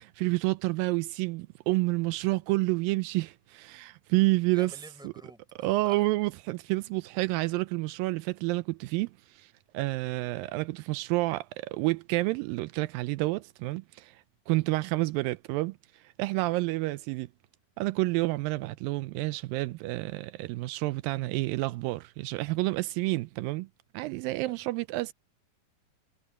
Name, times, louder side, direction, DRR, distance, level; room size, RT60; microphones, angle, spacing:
voice 1, 0.0-4.7 5.0-5.1 5.6-14.2 14.5-17.3 17.8-23.7 23.9-25.1, right 21 dB, 85° right, 2.3 m, -29 dB
voice 2, 4.5-5.4 5.8-6.0 24.4-24.5, right 1 dB, ahead, 6.1 m, -47 dB
omnidirectional pair, 4.0 m